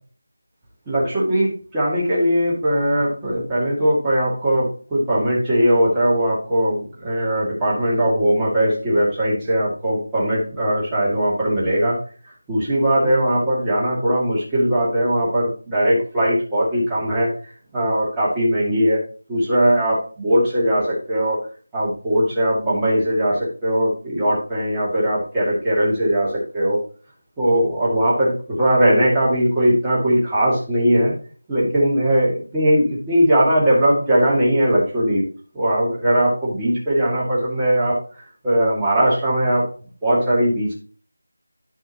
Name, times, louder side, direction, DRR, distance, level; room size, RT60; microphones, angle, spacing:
voice 1, 0.9-12.0 12.5-17.3 17.7-19.0 19.3-21.4 21.7-26.8 27.4-31.1 31.5-35.2 35.5-38.0 38.4-39.6 40.0-40.8, equal, 10° right, -9 dB, 2.5 m, -19 dB
12.0 x 5.4 x 3.0 m, 0.40 s
figure-of-eight pair, 170°, 0 cm